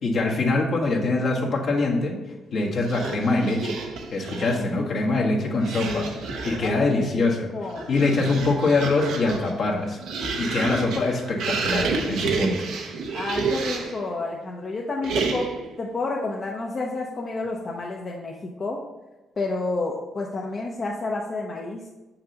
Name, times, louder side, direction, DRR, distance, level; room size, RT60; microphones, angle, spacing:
voice 1, 0.0-2.2 2.5-3.8 4.1-6.1 6.4-7.5 7.9-10.0 10.4-12.6, left 3 dB, 60° left, -1 dB, 1.3 m, -23 dB
sound 1, 2.8-4.7 5.6-6.8 7.5-14.0 15.0-15.7, right 4 dB, 85° right, 0.8 m, -30 dB
voice 2, 5.8-6.2 6.6-7.9 10.5-10.8 13.1-15.5 15.8-18.8 19.4-21.8, left 3 dB, 40° left, -1 dB, 0.7 m, -30 dB
6.5 x 5.8 x 2.9 m, 1.1 s
cardioid pair, 90°, 0 cm